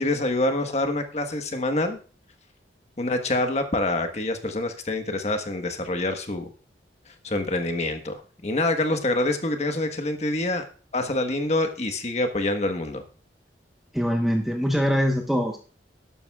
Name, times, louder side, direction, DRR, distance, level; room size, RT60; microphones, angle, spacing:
voice 1, 0.0-2.0 3.0-6.5 7.2-10.6 10.9-13.0, left 2 dB, 40° left, 6 dB, 1.3 m, -26 dB
voice 2, 13.9-15.6, equal, ahead, 1 dB, 1.0 m, -23 dB
12.0 x 11.5 x 2.4 m, 0.39 s
head